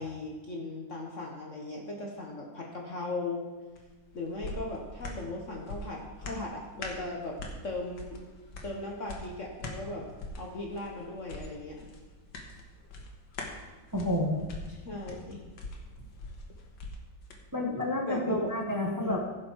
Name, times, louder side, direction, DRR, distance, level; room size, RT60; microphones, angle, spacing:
voice 1, 0.0-3.4 4.1-7.4 7.6-8.2 8.6-10.1 10.4-11.8 14.7-15.4 18.1-18.5 18.9-19.2, left 2 dB, 45° left, 0 dB, 1.3 m, -37 dB
sound 1, 3.7-17.4 17.8-17.9, left 2 dB, 90° left, 2.1 m, -43 dB
voice 2, 13.9-14.4 17.5-19.2, left 1 dB, 15° right, 1 dB, 0.7 m, -30 dB
15.5 x 6.6 x 4.6 m, 1.3 s
omnidirectional pair, 2.0 m